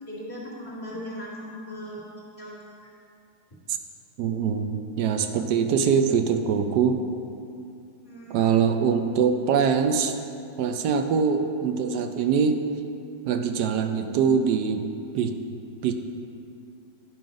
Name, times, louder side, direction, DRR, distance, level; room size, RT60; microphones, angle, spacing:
voice 1, 0.0-2.1 2.4-2.7 8.0-8.6, equal, 20° left, -7 dB, 2.0 m, -38 dB
voice 2, 4.2-7.0 8.3-10.2 10.6-12.6 13.3-14.9 15.1-15.4 15.8-15.9, right 6 dB, 75° right, 7 dB, 1.1 m, -23 dB
10.0 x 5.6 x 5.1 m, 2.6 s
omnidirectional pair, 1.9 m